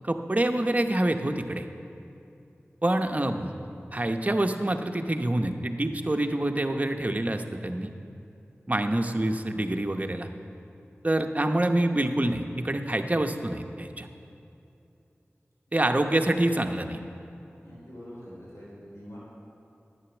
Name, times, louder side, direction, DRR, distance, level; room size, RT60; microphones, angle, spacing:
voice 1, 0.0-1.7 2.8-3.6 3.9-7.9 8.7-10.3 11.0-14.1 15.7-17.0, right 1 dB, 35° right, 5 dB, 0.8 m, -26 dB
voice 2, 17.6-19.2, equal, 85° left, -7 dB, 3.5 m, -45 dB
11.0 x 9.2 x 7.1 m, 2.7 s
wide cardioid pair, 45°, 5 cm